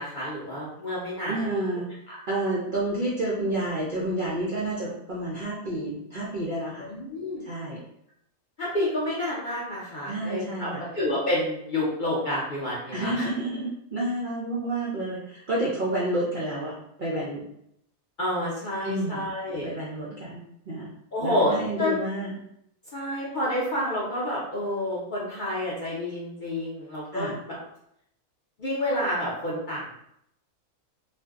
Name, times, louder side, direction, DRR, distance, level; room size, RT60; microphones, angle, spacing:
voice 1, 0.0-1.3 2.1-2.2 6.8-7.5 8.6-13.3 18.2-19.7 21.1-22.0 22.9-27.6 28.6-29.9, left 1 dB, 50° left, -7 dB, 0.6 m, -29 dB
voice 2, 1.3-1.9 2.3-6.9 7.4-7.8 10.1-10.8 12.9-17.4 18.8-19.2 19.6-20.9 21.2-22.3 27.1-27.4, right 1 dB, 60° right, -6 dB, 0.5 m, -30 dB
2.5 x 2.2 x 3.5 m, 0.75 s
omnidirectional pair, 1.5 m